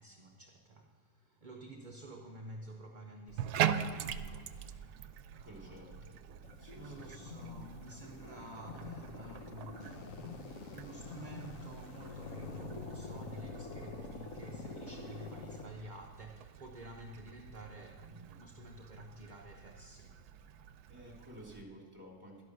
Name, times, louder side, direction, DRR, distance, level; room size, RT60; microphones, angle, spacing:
voice 1, 0.0-6.1 6.7-20.2, right 1 dB, 40° right, 2 dB, 0.8 m, -51 dB
Bathtub (filling or washing), 3.3-21.6, right 9 dB, 80° right, 1.1 m, -43 dB
voice 2, 5.4-6.1 6.6-7.3 20.9-22.4, equal, 20° right, -1 dB, 2.9 m, -52 dB
sound 1, 6.4-15.7, left 3 dB, 60° left, 1.4 m, -46 dB
11.5 x 11.0 x 6.7 m, 2.1 s
omnidirectional pair, 1.7 m